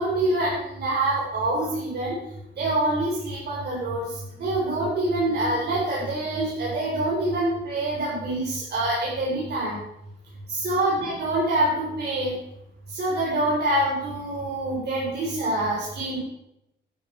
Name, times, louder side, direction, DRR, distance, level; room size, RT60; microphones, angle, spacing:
voice 1, 0.0-2.2 2.6-4.0 4.4-9.8 10.5-12.3 12.9-16.2, right 1 dB, 55° right, -5 dB, 4.4 m, -25 dB
12.0 x 11.0 x 4.7 m, 0.82 s
cardioid pair, 90°, 20 cm